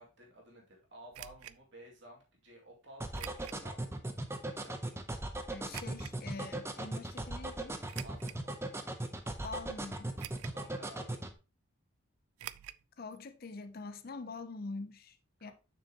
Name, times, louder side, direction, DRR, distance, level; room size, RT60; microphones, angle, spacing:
voice 1, 0.0-3.8 4.5-5.1 8.0-8.5 10.4-11.3 15.4-15.5, equal, 55° right, 2.4 m, -54 dB
sound 1, 1.1-1.6 3.1-3.6 4.2-4.3 5.7-6.2 7.9-8.5 9.1-9.2 10.2-10.7 10.9-11.0 12.4-12.8 13.1-13.2 13.5-13.6, right 12 dB, 85° right, 0.3 m, -46 dB
sound 2, 3.0-11.3, right 1 dB, 10° right, 0.6 m, -38 dB
voice 2, 5.5-7.8 9.4-10.1 13.0-15.5, left 3 dB, 45° left, 0.5 m, -44 dB
7.0 x 6.1 x 2.9 m
head